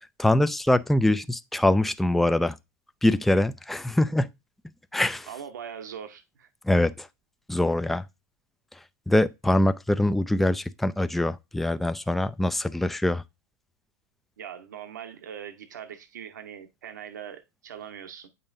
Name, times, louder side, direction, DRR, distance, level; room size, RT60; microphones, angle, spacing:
voice 1, 0.2-2.6 3.0-4.3 4.9-5.3 6.7-7.1 7.5-8.0 9.1-13.2, left 1 dB, ahead, 0.3 m, -23 dB
voice 2, 5.3-6.5 14.4-18.3, right 8 dB, 80° right, 0.9 m, -41 dB
8.6 x 5.4 x 2.6 m
hypercardioid pair, 100°, 10 cm